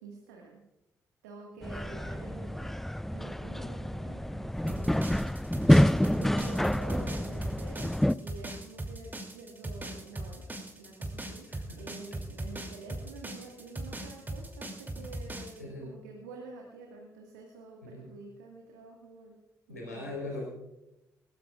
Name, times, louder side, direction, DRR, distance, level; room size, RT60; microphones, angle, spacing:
voice 1, 0.0-0.6 1.2-2.8 3.1-5.6 6.1-10.4 10.8-19.4 19.7-20.3, right 3 dB, 80° right, 0 dB, 1.9 m, -48 dB
sound 1, 1.6-8.1, left 1 dB, 5° left, 0.4 m, -27 dB
sound 2, 4.7-15.6, right 1 dB, 20° right, 2.9 m, -39 dB
voice 2, 11.5-11.8 15.6-15.9 17.8-18.1 19.7-20.5, left 2 dB, 90° left, -3 dB, 4.2 m, -40 dB
21.0 x 18.5 x 2.5 m, 0.91 s
figure-of-eight pair, 40°, 9 cm